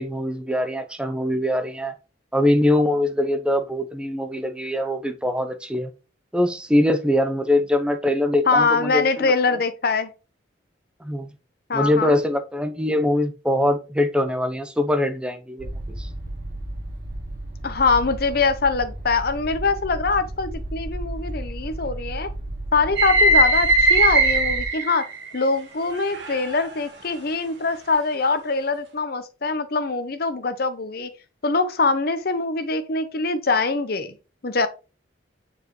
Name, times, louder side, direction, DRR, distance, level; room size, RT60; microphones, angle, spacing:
voice 1, 0.0-1.9 2.3-5.9 6.3-9.6 11.0-11.3 11.7-15.7 16.0-16.1, left 1 dB, 5° right, 0.7 m, -23 dB
voice 2, 8.5-10.1 11.7-12.2 17.6-22.3 22.7-25.1 25.3-31.1 31.4-34.2 34.4-34.7, left 4 dB, 50° left, 0.7 m, -23 dB
sound 1, 15.6-24.6, right 1 dB, 40° right, 2.5 m, -33 dB
sound 2, 23.0-25.4 25.9-26.8, right 2 dB, 65° right, 1.6 m, -19 dB
7.2 x 4.9 x 3.1 m
head